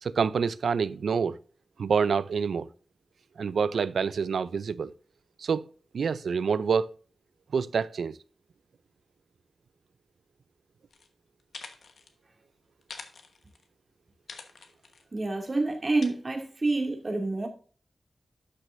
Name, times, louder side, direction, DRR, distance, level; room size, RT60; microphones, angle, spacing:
voice 1, 0.0-1.4 1.8-2.7 3.4-4.9 5.4-5.7 5.9-6.9 7.5-8.2, right 6 dB, 90° right, 0.4 m, -27 dB
sound 1, 10.9-11.1 11.4-12.1 12.8-13.7 14.3-15.0 16.0-16.1, left 4 dB, 85° left, 1.2 m, -45 dB
voice 2, 15.1-17.5, right 2 dB, 35° right, 2.3 m, -28 dB
12.0 x 6.3 x 2.6 m
wide cardioid pair, 90°, 0 cm